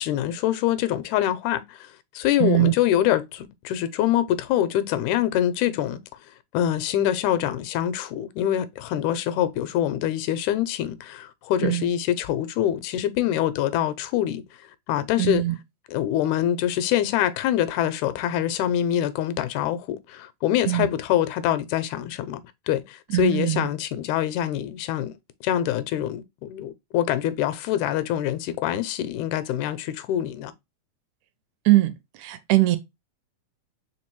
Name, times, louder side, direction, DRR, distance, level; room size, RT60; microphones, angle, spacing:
voice 1, 0.0-1.9 2.2-6.0 6.5-14.4 14.9-15.4 15.9-22.4 22.7-25.1 25.4-30.5, left 11 dB, 85° left, 2.0 m, -25 dB
voice 2, 2.4-2.7 11.6-11.9 15.2-15.6 20.7-20.9 23.1-23.6 31.7-31.9 32.2-32.8, right 17 dB, 80° right, 1.9 m, -21 dB
4.6 x 3.2 x 3.0 m
omnidirectional pair, 3.4 m